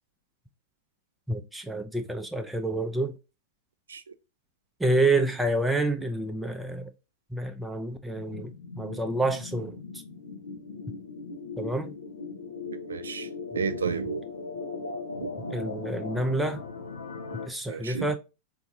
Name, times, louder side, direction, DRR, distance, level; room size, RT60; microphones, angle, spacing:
voice 1, 1.3-3.1 4.8-6.9 7.3-9.8 11.6-11.9 15.5-16.6 17.5-18.2, right 2 dB, 5° right, 0.5 m, -28 dB
sound 1, 8.2-17.5, left 4 dB, 75° left, 0.7 m, -38 dB
voice 2, 12.9-14.2 15.2-15.3 17.7-18.1, right 6 dB, 70° right, 0.4 m, -32 dB
4.6 x 2.6 x 2.6 m
figure-of-eight pair, 90°, 0 cm